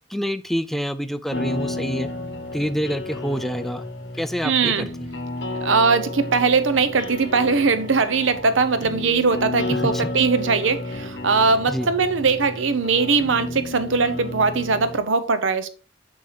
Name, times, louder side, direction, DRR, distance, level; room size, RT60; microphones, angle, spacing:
voice 1, 0.1-2.1 2.5-3.9 4.2-5.1 9.7-10.1 11.7-11.9, equal, ahead, 0.3 m, -27 dB
sound 1, 1.3-15.0, left 2 dB, 60° left, 1.3 m, -32 dB
voice 2, 4.4-4.9 5.6-15.7, right 4 dB, 85° right, 0.7 m, -20 dB
7.0 x 5.4 x 3.2 m
head